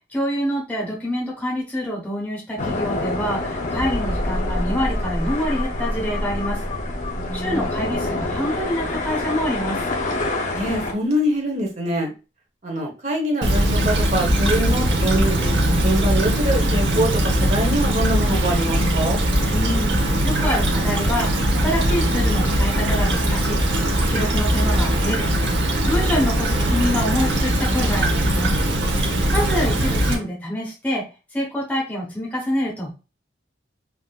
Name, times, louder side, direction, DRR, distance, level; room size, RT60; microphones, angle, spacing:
voice 1, 0.1-6.6 7.3-9.8 19.5-23.6 24.1-25.3 25.9-28.6 29.3-31.0 31.3-32.9, equal, 10° left, -4 dB, 0.8 m, -26 dB
sound 1, 2.6-10.9, left 2 dB, 40° left, 0.5 m, -27 dB
sound 2, 3.8-9.2 9.5-9.6 10.1-10.2, equal, 60° left, 1.1 m, -29 dB
voice 2, 7.1-7.6 10.5-12.1 12.6-15.5 15.8-19.2, right 1 dB, 35° right, 2 dB, 0.9 m, -24 dB
Stream / Trickle dribble, 13.4-30.2, right 1 dB, 75° right, 0.8 m, -20 dB
3.5 x 2.5 x 2.3 m, 0.31 s
head